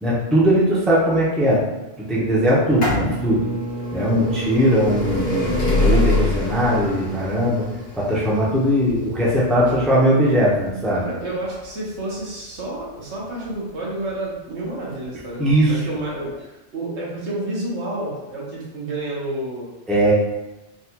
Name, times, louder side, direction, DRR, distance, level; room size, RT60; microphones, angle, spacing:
voice 1, 0.0-1.6 2.0-3.4 3.9-7.6 7.9-11.0 15.4-15.8 19.9-20.1, equal, ahead, -6 dB, 0.6 m, -19 dB
sound 1, 2.5-14.1 14.9-15.0 16.0-16.1 16.3-16.4, left 1 dB, 80° left, 1.3 m, -26 dB
voice 2, 4.0-4.3 9.6-9.7 11.0-19.7, right 1 dB, 75° right, -5 dB, 1.3 m, -30 dB
3.9 x 2.4 x 2.8 m, 1.0 s
omnidirectional pair, 1.2 m